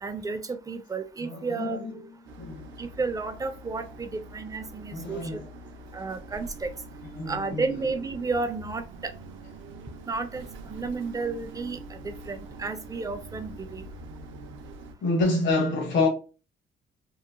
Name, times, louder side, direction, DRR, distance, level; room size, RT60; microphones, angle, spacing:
voice 1, 0.0-1.8 2.8-5.4 5.9-6.7 7.3-9.1 10.1-13.9, right 4 dB, 20° right, 0.4 m, -32 dB
voice 2, 1.2-2.0 2.4-2.7 4.9-5.5 7.1-7.6 15.0-16.1, left 2 dB, 65° left, 1.0 m, -27 dB
sound 1, 2.3-14.9, right 2 dB, 80° right, 0.5 m, -44 dB
2.9 x 2.1 x 2.4 m
cardioid pair, 90°, 20 cm